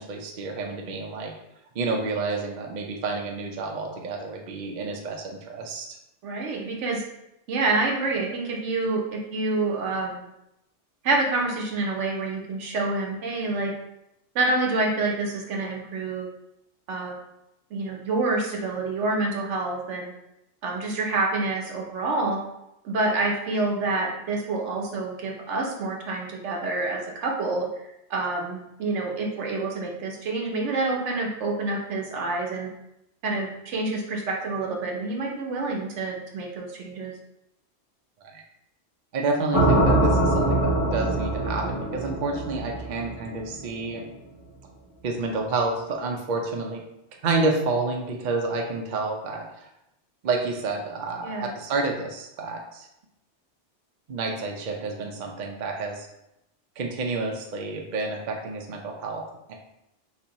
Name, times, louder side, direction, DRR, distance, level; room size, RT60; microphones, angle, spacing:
voice 1, 0.0-1.3 1.7-5.9 38.2-38.4 39.1-44.1 45.0-46.8 47.2-49.7 50.2-52.9 54.1-56.1 56.8-59.6, right 3 dB, 55° right, 1 dB, 0.5 m, -29 dB
voice 2, 6.2-7.0 7.5-10.2 11.0-13.7 14.3-16.3 16.9-17.2 17.7-20.1 20.6-22.4 22.8-32.7 33.2-37.1 51.2-51.5, right 3 dB, 75° right, 0 dB, 1.0 m, -27 dB
sound 1, 39.5-43.6, right 1 dB, 15° left, 1.0 m, -23 dB
4.1 x 2.6 x 2.9 m, 0.84 s
omnidirectional pair, 1.2 m